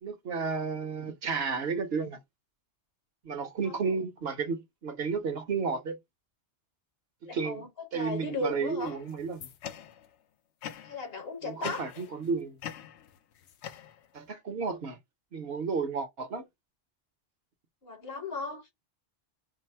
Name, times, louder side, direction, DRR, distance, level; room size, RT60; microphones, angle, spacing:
voice 1, 0.0-2.2 3.2-6.0 7.2-7.6 7.9-9.5 11.4-12.6 14.1-15.0 15.3-16.5, right 5 dB, 65° right, 0.9 m, -32 dB
voice 2, 7.3-8.9 10.8-11.8 17.8-18.7, left 2 dB, 60° left, 1.4 m, -36 dB
sound 1, 8.8-10.2 10.6-11.1 11.6-12.3 12.6-14.3, left 9 dB, 75° left, 0.8 m, -43 dB
4.6 x 2.0 x 4.2 m
omnidirectional pair, 1.2 m